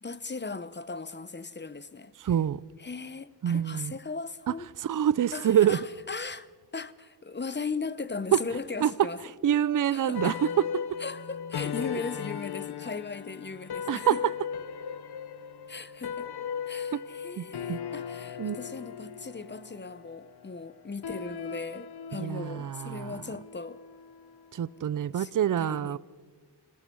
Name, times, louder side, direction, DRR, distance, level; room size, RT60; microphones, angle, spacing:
voice 1, 0.0-2.4 2.8-4.7 5.3-9.2 9.9-10.5 11.0-14.2 15.7-16.3 16.7-23.8 25.1-25.3 25.6-26.0, left 4 dB, 25° left, 0.8 m, -38 dB
voice 2, 2.2-2.6 3.4-3.9 4.8-5.8 8.8-8.9 9.4-10.3 13.9-14.2 16.9-17.0 17.4-17.5 17.7-17.8 18.4-18.6 22.1-23.2 24.5-26.0, right 9 dB, 50° right, 0.5 m, -26 dB
sound 1, 10.1-24.7, left 7 dB, 65° left, 0.8 m, -38 dB
26.0 x 18.0 x 6.3 m
wide cardioid pair, 80°, 42 cm